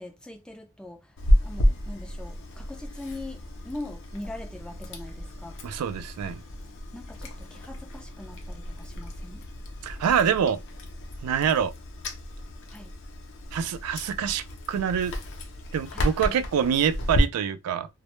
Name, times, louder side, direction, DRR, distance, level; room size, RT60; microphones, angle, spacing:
voice 1, 0.0-5.6 6.9-9.4 12.7-12.9 15.9-16.4, left 2 dB, 5° left, 0.3 m, -42 dB
Chewing mastication, 1.2-17.2, equal, 60° left, 0.5 m, -31 dB
voice 2, 5.6-6.4 9.8-10.6 11.2-11.7 13.5-15.1 15.7-17.9, right 8 dB, 90° right, 0.3 m, -25 dB
2.1 x 2.0 x 2.9 m
head